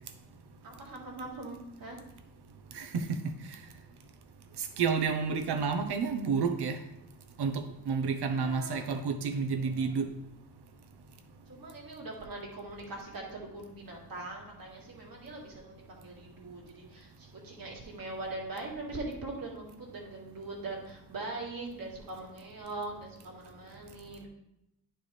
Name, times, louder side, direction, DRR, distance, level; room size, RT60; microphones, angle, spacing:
voice 1, 0.6-2.0 8.3-8.9 9.6-9.9 11.5-24.3, right 2 dB, 60° right, -2 dB, 2.0 m, -42 dB
voice 2, 2.7-3.3 4.6-6.8 7.4-10.1, right 5 dB, 75° right, 5 dB, 0.9 m, -30 dB
10.0 x 4.6 x 3.3 m, 0.83 s
wide cardioid pair, 135°, 39 cm